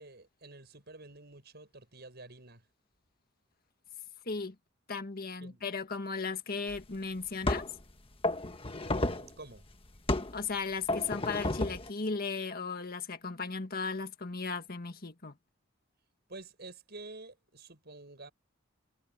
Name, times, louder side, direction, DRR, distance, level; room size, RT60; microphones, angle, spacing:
voice 1, 0.0-2.6 5.4-5.6 9.0-9.7 16.3-18.3, right 2 dB, 55° right, 7.9 m, -49 dB
voice 2, 4.3-4.6 4.9-7.7 10.3-15.3, left 4 dB, 50° left, 1.7 m, -36 dB
sound 1, 6.7-6.8 7.4-7.8 8.2-9.3 10.1-10.4 10.9-11.9, left 2 dB, 30° left, 1.4 m, -31 dB
head